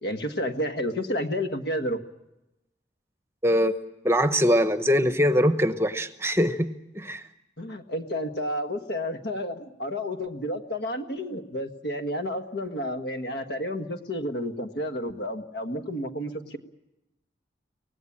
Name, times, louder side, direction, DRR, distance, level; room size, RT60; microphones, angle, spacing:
voice 1, 0.0-2.0 7.6-16.6, equal, 65° left, 7 dB, 1.7 m, -31 dB
voice 2, 3.4-3.7 4.0-7.2, equal, 15° right, 10 dB, 0.9 m, -22 dB
25.0 x 18.5 x 8.7 m, 0.95 s
head